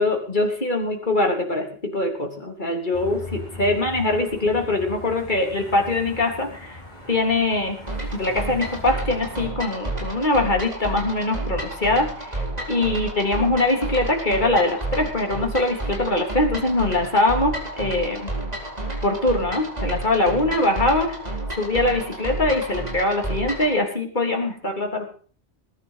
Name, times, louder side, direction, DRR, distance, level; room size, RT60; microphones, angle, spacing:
voice 1, 0.0-6.8 7.1-7.8 8.1-12.4 12.7-18.3 19.0-21.2 21.6-25.0, left 2 dB, 45° left, 2 dB, 3.7 m, -22 dB
sound 1, 2.9-9.5, left 2 dB, 25° left, 5.7 m, -39 dB
sound 2, 7.9-23.7, right 2 dB, 40° right, 4.5 m, -31 dB
19.5 x 11.0 x 5.8 m, 0.43 s
omnidirectional pair, 1.1 m